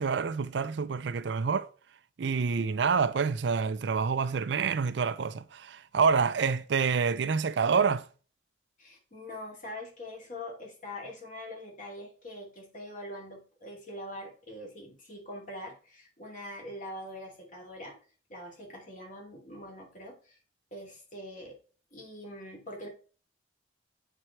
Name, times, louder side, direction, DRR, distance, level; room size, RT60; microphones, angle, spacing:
voice 1, 0.0-1.7 2.2-8.0, right 5 dB, 70° right, 0.5 m, -27 dB
voice 2, 8.8-17.9 18.3-20.4 20.7-21.5 21.9-22.9, left 1 dB, 45° left, 2.7 m, -43 dB
8.0 x 4.4 x 4.5 m
head